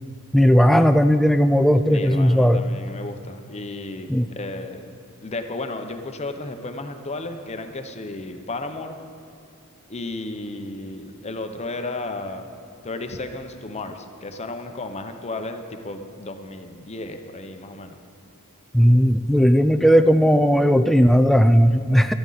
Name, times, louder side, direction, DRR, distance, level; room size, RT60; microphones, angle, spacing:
voice 1, 0.3-2.7 4.1-4.3 18.7-22.1, equal, ahead, 9 dB, 0.3 m, -16 dB
voice 2, 1.9-4.9 5.2-9.0 9.9-12.5 12.8-18.0, left 2 dB, 30° left, 6 dB, 0.8 m, -33 dB
15.5 x 12.5 x 4.0 m, 2.4 s
head